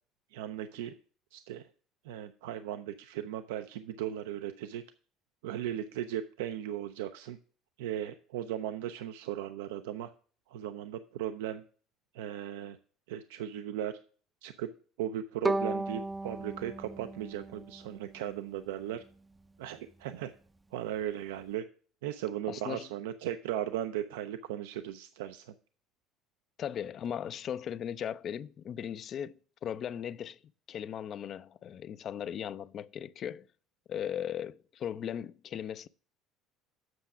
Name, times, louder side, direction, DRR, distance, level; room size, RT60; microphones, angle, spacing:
voice 1, 0.3-0.9 1.3-1.7 2.0-4.8 5.4-7.4 7.8-10.1 10.5-11.6 12.1-12.8 13.1-13.9 14.4-14.7 15.0-19.0 19.6-20.3 20.7-21.6 22.0-25.5, right 11 dB, 90° right, 0.4 m, -37 dB
Bowed string instrument, 15.4-18.5, right 2 dB, 15° right, 0.4 m, -35 dB
voice 2, 22.5-22.9 26.6-30.4 30.7-33.5 33.9-35.9, left 9 dB, 50° left, 0.4 m, -38 dB
7.8 x 5.8 x 6.0 m
supercardioid pair, 90°, 0 cm